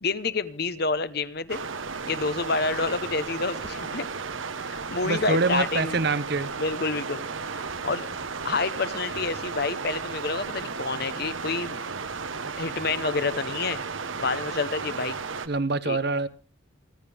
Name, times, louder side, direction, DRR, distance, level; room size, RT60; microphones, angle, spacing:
voice 1, 0.0-1.6 2.0-4.1 4.7-6.0 6.6-7.3 7.8-8.1 8.4-11.8 12.6-13.8 14.2-15.1 15.8-16.0, left 4 dB, 50° left, 1.0 m, -28 dB
sound 1, 1.5-15.5, right 5 dB, 75° right, 1.1 m, -34 dB
voice 2, 5.0-6.5 15.5-16.3, right 3 dB, 50° right, 0.9 m, -25 dB
29.0 x 10.5 x 3.5 m
head